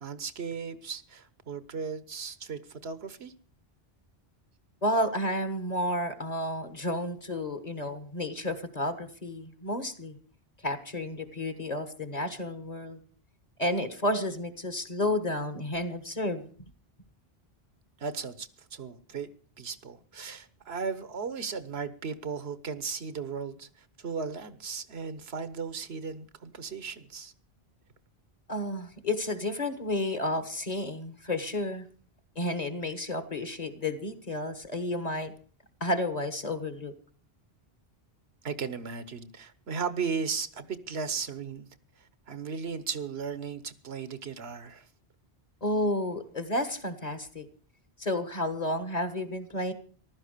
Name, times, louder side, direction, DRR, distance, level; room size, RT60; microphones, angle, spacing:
voice 1, 0.0-3.3 18.0-19.3 19.6-23.7 24.0-27.3 38.4-41.7 42.3-44.9, right 5 dB, 75° right, 1.3 m, -36 dB
voice 2, 4.8-10.2 10.6-13.0 13.6-16.4 28.5-31.9 32.3-35.3 35.8-36.9 45.6-47.4 48.0-49.7, left 1 dB, 40° left, 1.6 m, -31 dB
15.0 x 12.5 x 6.7 m
omnidirectional pair, 1.1 m